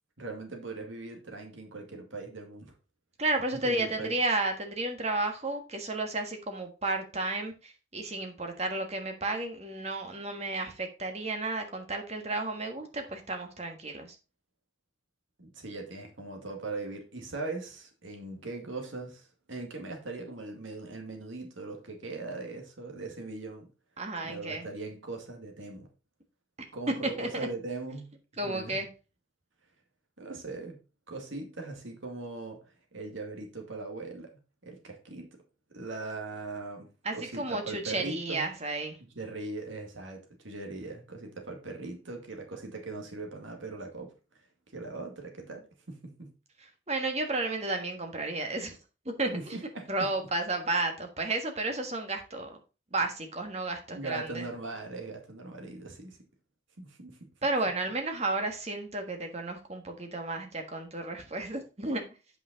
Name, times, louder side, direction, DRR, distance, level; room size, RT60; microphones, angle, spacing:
voice 1, 0.2-2.7 3.5-4.1 15.4-23.7 24.2-25.9 26.7-28.1 28.4-28.8 30.2-30.8 31.1-34.3 34.6-35.3 35.7-38.4 39.2-44.1 44.7-46.3 49.3-49.9 53.9-56.2 56.8-57.3, right 3 dB, 75° right, 2.0 m, -40 dB
voice 2, 3.2-14.2 24.0-24.7 26.6-26.7 27.2-27.5 28.4-28.9 37.0-39.0 46.6-48.8 49.0-49.6 49.9-52.6 52.9-54.4 57.4-62.0, right 2 dB, 35° right, 1.4 m, -32 dB
8.3 x 5.7 x 4.0 m
head